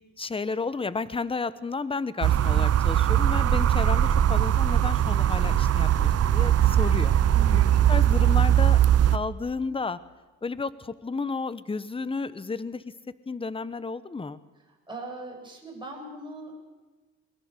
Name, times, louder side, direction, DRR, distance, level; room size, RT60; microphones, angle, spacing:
voice 1, 0.2-7.2 7.5-7.6 7.9-10.0 10.4-12.8 13.3-14.4, left 4 dB, 20° left, 16 dB, 1.0 m, -32 dB
sound 1, 2.2-9.2, right 10 dB, 55° right, 0.7 m, -21 dB
voice 2, 7.3-7.8 14.7-16.6, right 2 dB, 15° right, -1 dB, 7.8 m, -40 dB
22.5 x 21.5 x 6.7 m, 1.2 s
cardioid pair, 90°, 30 cm